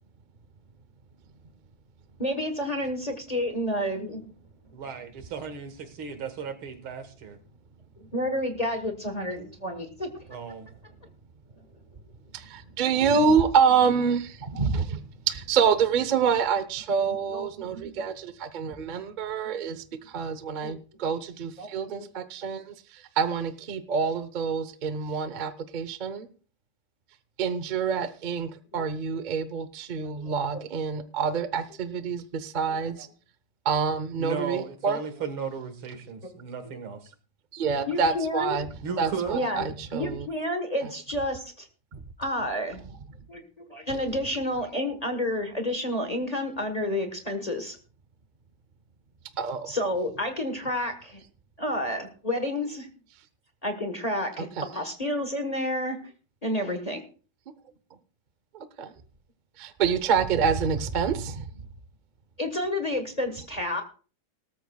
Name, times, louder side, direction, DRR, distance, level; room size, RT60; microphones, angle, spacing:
voice 1, 2.2-4.3 8.1-10.1 17.3-17.4 17.7-17.9 20.6-20.7 21.6-22.1 28.7-28.8 30.1-30.2 37.9-38.6 39.3-39.6 39.9-41.7 42.2-42.8 43.3-47.8 49.7-51.2 51.6-52.9 53.6-54.5 54.7-56.0 56.4-57.0 62.4-63.8, left 1 dB, 25° left, 5 dB, 1.1 m, -30 dB
voice 2, 4.7-7.4 10.3-10.7 34.2-37.1 38.8-39.4, right 6 dB, 85° right, 8 dB, 2.4 m, -35 dB
voice 3, 12.3-26.3 27.4-33.1 33.6-35.0 37.5-38.7 39.0-40.3 40.8-40.9 41.9-42.0 49.4-49.7 54.6-54.7 58.5-58.9 59.6-61.6, right 6 dB, 70° right, 12 dB, 0.4 m, -27 dB
18.5 x 13.5 x 2.3 m, 0.38 s
omnidirectional pair, 2.2 m